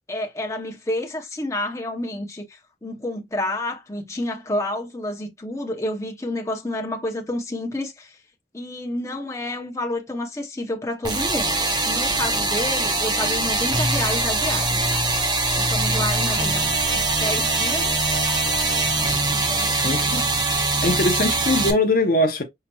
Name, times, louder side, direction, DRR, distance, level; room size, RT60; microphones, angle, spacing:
voice 1, 0.1-8.2 8.5-14.8 15.6-16.7 16.9-18.0 19.3-20.1, left 1 dB, 15° left, 0.8 m, -29 dB
sound 1, 11.0-21.7, right 2 dB, 25° right, 0.8 m, -22 dB
voice 2, 19.8-22.4, left 2 dB, 55° left, 0.7 m, -22 dB
5.6 x 2.9 x 2.3 m
head